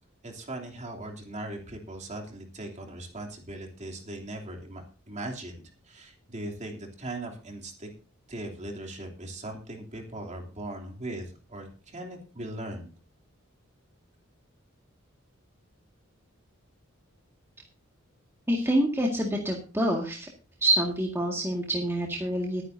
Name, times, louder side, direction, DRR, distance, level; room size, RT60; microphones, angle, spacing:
voice 1, 0.2-5.5 5.8-7.9 8.3-12.9, right 1 dB, 35° right, 1 dB, 3.0 m, -39 dB
voice 2, 18.5-20.3 20.6-22.6, right 1 dB, 10° right, -1 dB, 2.0 m, -26 dB
21.5 x 9.8 x 2.7 m, 0.34 s
head